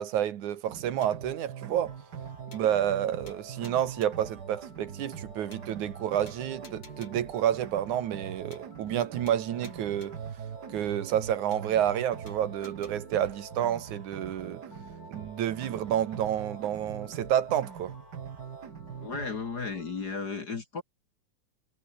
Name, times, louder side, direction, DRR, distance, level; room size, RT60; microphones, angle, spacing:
voice 1, 0.0-2.0 2.5-10.2 10.7-14.6 15.1-17.9, right 10 dB, 75° right, 2.9 m, -29 dB
sound 1, 0.7-19.3, right 8 dB, 45° right, 1.4 m, -43 dB
sound 2, 1.0-1.4 1.8-1.9 2.1-2.2 2.5-3.0 3.3-4.3 4.8-4.9 5.1-5.2 5.5-6.0 6.3-7.3 7.8-7.9 8.1-8.3 8.5-9.0 9.3-10.3 10.8-10.9 11.1-11.2 11.5-12.0 12.3-12.9, left 4 dB, 60° left, 6.7 m, -55 dB
sound 3, 1.9-20.2, left 3 dB, 80° left, 9.2 m, -54 dB
voice 2, 19.0-20.8, left 4 dB, 35° left, 2.0 m, -34 dB
omnidirectional pair, 3.5 m